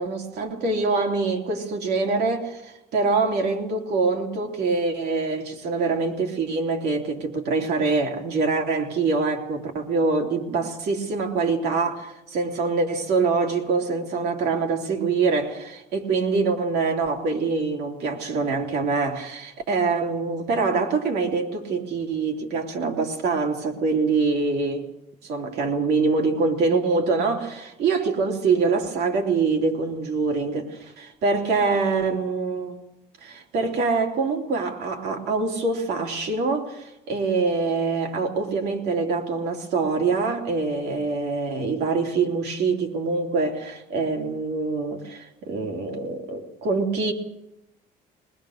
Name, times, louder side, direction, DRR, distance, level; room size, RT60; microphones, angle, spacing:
voice 1, 0.0-24.9 25.2-32.7 33.2-47.1, right 4 dB, 75° right, 3.0 m, -24 dB
21.0 x 20.5 x 6.5 m
cardioid pair, 110°, 17 cm